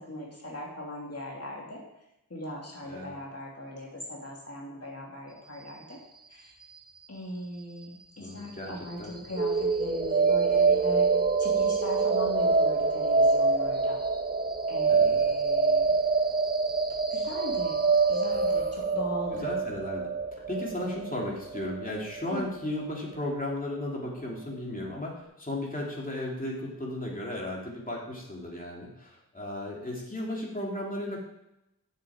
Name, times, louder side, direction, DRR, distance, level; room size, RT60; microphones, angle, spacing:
voice 1, 0.0-1.8 2.3-6.0 6.3-6.5 7.1-11.1 11.4-14.0 14.7-15.9 17.1-17.8 18.1-19.5 22.3-22.4, left 1 dB, 45° left, -3 dB, 2.8 m, -39 dB
voice 2, 2.8-3.2 8.2-9.2 14.9-15.2 19.3-20.1 20.5-31.2, left 1 dB, 25° left, -3 dB, 3.0 m, -35 dB
sound 1, 9.3-23.3, right 4 dB, 25° right, 1.2 m, -26 dB
8.8 x 7.9 x 8.8 m, 0.87 s
wide cardioid pair, 80°, 36 cm